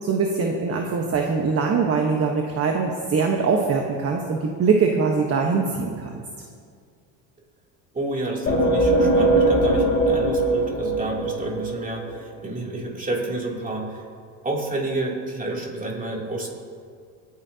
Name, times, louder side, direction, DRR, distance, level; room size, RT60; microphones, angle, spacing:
voice 1, 0.0-6.2, right 5 dB, 35° right, 2 dB, 1.2 m, -22 dB
voice 2, 7.9-14.1 14.4-16.5, right 2 dB, 20° right, -2 dB, 2.9 m, -29 dB
sound 1, 8.5-12.1, right 1 dB, 30° left, 4.2 m, -20 dB
28.0 x 9.4 x 2.8 m, 2.2 s
supercardioid pair, 105°, 41 cm